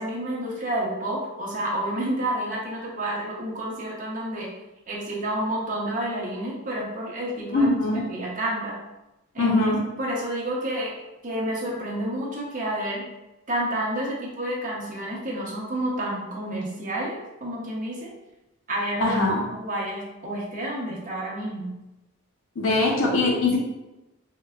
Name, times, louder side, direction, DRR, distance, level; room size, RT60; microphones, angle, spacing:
voice 1, 0.0-4.5 4.9-8.8 9.3-10.9 11.2-13.0 13.5-18.1 18.7-21.7, right 1 dB, 40° right, -3 dB, 0.7 m, -30 dB
voice 2, 7.5-8.0 9.4-9.8 19.0-19.4 22.6-23.6, left 2 dB, 75° left, 0 dB, 0.5 m, -21 dB
4.5 x 2.2 x 2.3 m, 0.98 s
head